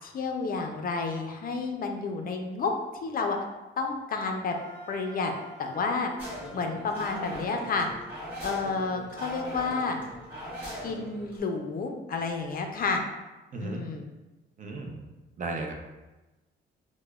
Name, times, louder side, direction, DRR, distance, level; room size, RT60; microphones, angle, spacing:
voice 1, 0.0-2.7 3.0-3.4 3.8-4.6 4.9-5.3 5.6-6.1 6.5-7.9 8.4-10.0 10.8-13.0 13.6-14.1, left 4 dB, 45° left, 4 dB, 0.4 m, -30 dB
Wind instrument woodwind instrument, 4.5-8.2, right 1 dB, 15° left, 1.4 m, -49 dB
sound 1, 6.2-11.4, equal, 10° right, 1.5 m, -40 dB
voice 2, 13.5-13.8 14.6-15.0 15.4-15.7, right 3 dB, 40° right, 2 dB, 0.5 m, -34 dB
4.6 x 2.1 x 2.3 m, 1.1 s
cardioid pair, 90°, 20 cm